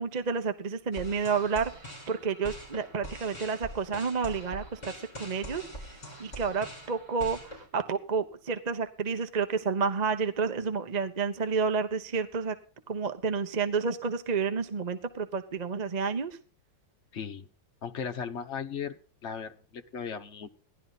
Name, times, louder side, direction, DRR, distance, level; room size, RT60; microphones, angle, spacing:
voice 1, 0.0-1.7 2.1-4.9 5.2-5.6 6.2-12.6 12.9-16.4, right 5 dB, 40° right, 8 dB, 0.6 m, -30 dB
sound 1, 0.9-7.7, equal, 20° left, 4.7 m, -44 dB
voice 2, 17.1-17.5 17.8-19.0 19.2-20.5, left 7 dB, 45° left, 5 dB, 1.1 m, -37 dB
17.0 x 11.5 x 4.0 m, 0.39 s
omnidirectional pair, 2.0 m